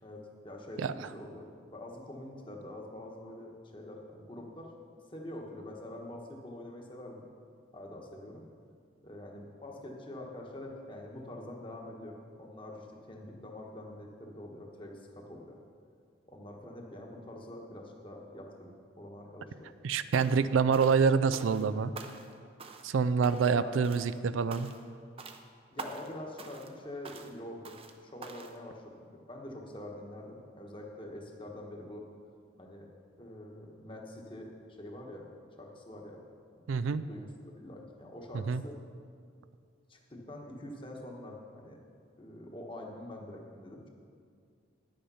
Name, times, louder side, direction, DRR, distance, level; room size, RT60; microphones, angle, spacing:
voice 1, 0.0-1.5 1.7-4.7 5.1-7.2 7.7-8.4 9.0-15.6 16.3-19.5 23.5-23.8 25.7-27.7 28.0-32.0 32.6-32.9 33.2-34.5 34.8-35.3 35.6-36.2 36.6-36.7 37.1-38.7 39.9-41.8 42.2-43.9, left 1 dB, 25° left, 0 dB, 1.2 m, -45 dB
voice 2, 19.8-21.9 22.8-24.7 36.7-37.0 38.3-38.6, right 5 dB, 90° right, 14 dB, 0.4 m, -26 dB
sound 1, 20.1-20.4 20.7-21.7 21.9-22.3 22.6-22.9 23.2-23.6 23.8-24.2 24.5-24.9 25.2-25.4 25.8-26.1 26.4-26.7 27.0-27.3 27.6-27.9 28.2-28.6, right 4 dB, 30° right, 0.6 m, -45 dB
10.0 x 8.7 x 5.6 m, 2.2 s
head